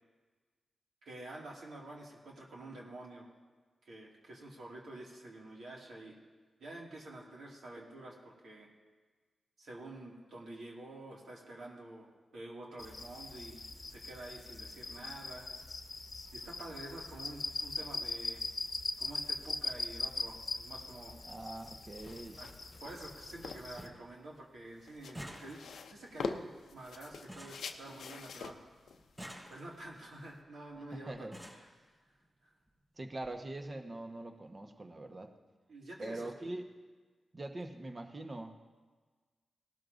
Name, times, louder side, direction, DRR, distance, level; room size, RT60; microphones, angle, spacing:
voice 1, 1.0-3.3 3.9-6.2 6.6-8.7 9.6-13.6 13.9-15.5 16.3-18.4 19.0-21.2 22.4-22.5 22.8-28.6 29.5-31.3 31.6-31.9 32.4-32.5 35.7-36.3, right 2 dB, 80° right, -3 dB, 2.3 m, -48 dB
sound 1, 12.8-23.9, left 3 dB, 50° left, 0.9 m, -41 dB
voice 2, 21.2-22.4 30.9-31.4 33.0-35.3 36.0-36.7 37.3-38.5, right 2 dB, 40° right, 5 dB, 1.2 m, -43 dB
sound 2, 21.9-30.4, left 5 dB, 80° left, 0.6 m, -46 dB
sound 3, 22.0-22.2 22.7-23.2 23.4-23.5 23.8-24.1 24.4-28.4 29.0-30.0 30.8-30.9 31.1-31.7 32.7-32.8 33.1-33.3 33.6-33.7, equal, 25° right, 4.5 m, -51 dB
18.0 x 12.5 x 2.7 m, 1.4 s
supercardioid pair, 40°, 0 cm